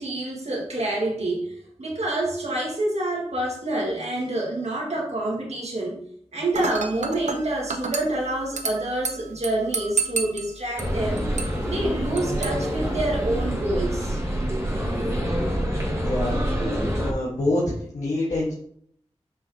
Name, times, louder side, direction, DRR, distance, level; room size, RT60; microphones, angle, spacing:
voice 1, 0.0-6.0 6.3-11.2 11.6-14.2, right 1 dB, 65° right, -3 dB, 1.8 m, -27 dB
Dishes pots and pans / Glass, 6.5-13.5, right 4 dB, 80° right, 0.7 m, -33 dB
sound 1, 10.8-17.1, equal, 25° right, 2.0 m, -26 dB
voice 2, 16.0-16.4 16.9-18.5, left 1 dB, 85° left, -5 dB, 1.5 m, -26 dB
6.3 x 5.4 x 2.8 m, 0.64 s
cardioid pair, 40°, 12 cm